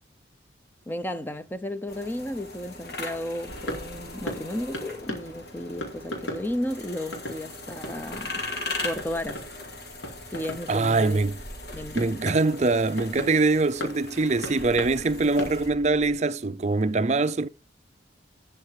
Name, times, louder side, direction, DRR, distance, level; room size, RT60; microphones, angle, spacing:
voice 1, 0.9-8.4 8.8-9.4 10.3-11.2 11.7-12.4, left 1 dB, 10° left, 0.8 m, -33 dB
sound 1, 1.9-15.7, left 3 dB, 55° left, 4.2 m, -39 dB
sound 2, 3.5-16.1, equal, 85° left, 4.2 m, -39 dB
voice 2, 10.7-11.4 11.9-17.5, right 3 dB, 40° right, 0.5 m, -23 dB
12.5 x 5.9 x 4.8 m
head